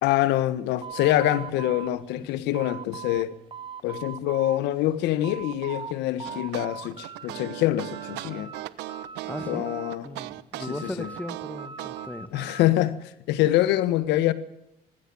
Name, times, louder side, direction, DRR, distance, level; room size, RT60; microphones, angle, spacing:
voice 1, 0.0-3.4 3.8-8.5 9.5-10.1 10.7-11.1 12.3-14.3, left 14 dB, 90° left, 1.6 m, -25 dB
sound 1, 0.8-3.3 3.5-4.6 5.0-5.9 6.2-7.3 7.6-8.6 8.9-10.2 10.6-12.7, right 6 dB, 30° right, 1.6 m, -40 dB
sound 2, 6.2-12.1, right 16 dB, 90° right, 1.0 m, -37 dB
voice 2, 9.2-9.7 10.0-12.4, left 1 dB, 10° left, 1.5 m, -37 dB
19.5 x 16.0 x 8.7 m
cardioid pair, 110°, 17 cm